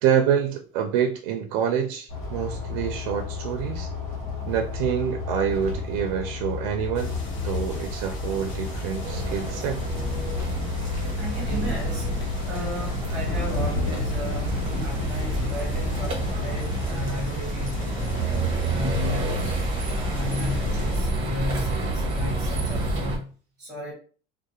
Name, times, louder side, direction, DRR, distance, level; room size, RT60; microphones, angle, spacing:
voice 1, 0.0-3.9 4.5-7.2 7.4-9.8, right 8 dB, 75° right, 0.4 m, -26 dB
sound 1, 2.1-16.9, left 4 dB, 40° left, 0.7 m, -33 dB
voice 2, 4.2-4.5 11.2-12.1 12.4-14.5 14.8-18.1 18.7-19.4 19.9-23.9, equal, ahead, 1.2 m, -35 dB
sound 2, 6.9-21.0, left 1 dB, 60° left, 1.0 m, -32 dB
sound 3, 9.0-23.2, right 2 dB, 30° right, 0.6 m, -29 dB
2.3 x 2.0 x 2.8 m
cardioid pair, 160°, 18 cm